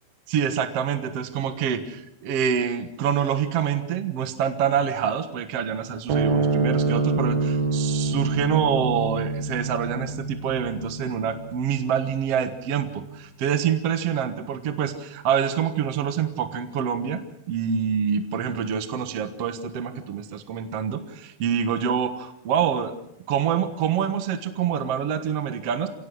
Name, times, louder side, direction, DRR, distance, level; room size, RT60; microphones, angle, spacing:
voice 1, 0.3-17.2 17.5-22.9 23.3-25.9, right 8 dB, 55° right, 9 dB, 1.9 m, -26 dB
sound 1, 6.1-12.7, right 3 dB, 75° right, 4.1 m, -26 dB
27.5 x 18.0 x 6.3 m, 0.78 s
omnidirectional pair, 4.4 m